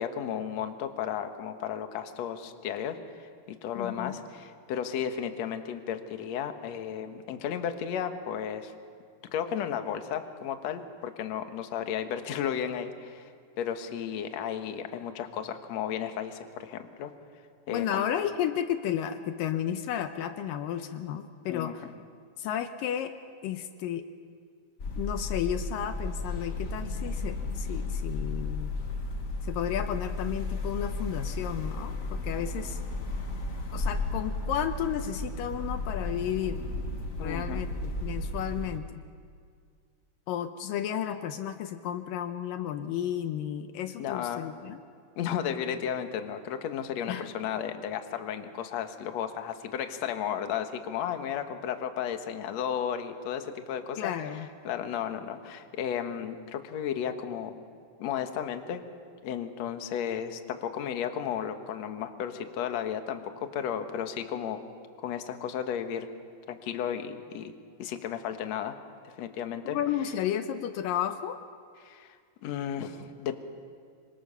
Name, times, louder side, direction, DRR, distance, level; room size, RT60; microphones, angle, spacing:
voice 1, 0.0-8.7 9.3-13.3 13.6-17.1 17.7-18.0 21.5-21.7 37.2-37.6 44.0-44.4 45.2-54.4 54.6-57.5 58.0-58.8 59.2-64.6 65.0-66.1 66.5-67.5 67.8-68.7 69.0-69.8 71.8-72.2 72.4-73.4, left 8 dB, 60° left, 7 dB, 2.3 m, -34 dB
voice 2, 3.8-4.2 17.7-21.9 22.4-23.1 23.4-24.1 24.9-28.8 29.4-32.8 33.7-36.7 37.2-39.0 40.3-44.8 47.1-47.3 54.0-54.5 69.7-71.4, left 10 dB, 80° left, 9 dB, 2.5 m, -33 dB
sound 1, 24.8-38.8, left 2 dB, 45° left, 1.1 m, -34 dB
26.0 x 25.5 x 6.9 m, 2.1 s
omnidirectional pair, 3.9 m